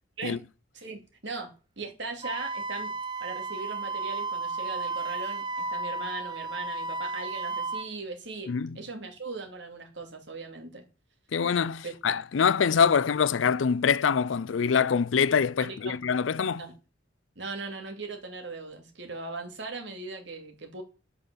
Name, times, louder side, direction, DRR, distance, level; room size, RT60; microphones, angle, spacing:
voice 1, 0.7-1.5 1.8-2.9 3.2-10.8 11.8-11.9 15.6-15.9 16.6-16.7 17.4-20.8, right 3 dB, 65° right, 2.8 m, -39 dB
Wind instrument woodwind instrument, 2.2-7.9, right 3 dB, 25° right, 0.6 m, -33 dB
voice 2, 11.3-16.6, left 6 dB, 85° left, 0.5 m, -24 dB
11.5 x 5.8 x 7.0 m
head